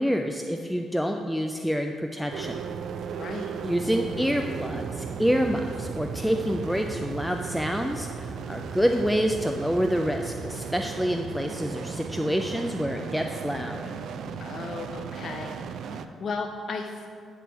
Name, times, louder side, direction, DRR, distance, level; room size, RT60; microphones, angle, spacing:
voice 1, 0.0-2.6 3.6-13.9, equal, ahead, 4 dB, 0.4 m, -27 dB
sound 1, 2.3-16.1, right 6 dB, 70° right, 0.3 m, -36 dB
voice 2, 3.2-3.5 14.4-15.5 15.9-17.1, left 4 dB, 55° left, 4 dB, 0.5 m, -35 dB
9.4 x 3.6 x 5.9 m, 2.3 s
cardioid pair, 75°, 0 cm